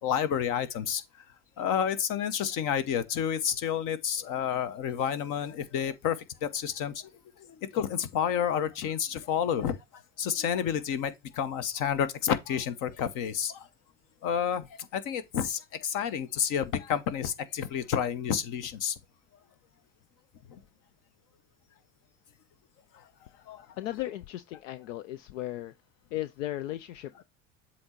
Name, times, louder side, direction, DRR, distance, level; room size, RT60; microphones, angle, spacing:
voice 1, 0.0-1.0 1.6-7.1 7.7-9.8 10.2-13.7 14.2-14.7 14.9-18.9 20.5-20.6 23.5-23.6, left 8 dB, 60° left, 1.0 m, -30 dB
voice 2, 23.8-25.7 26.1-27.2, left 14 dB, 80° left, 0.5 m, -36 dB
7.7 x 2.9 x 4.3 m
hypercardioid pair, 70°, 36 cm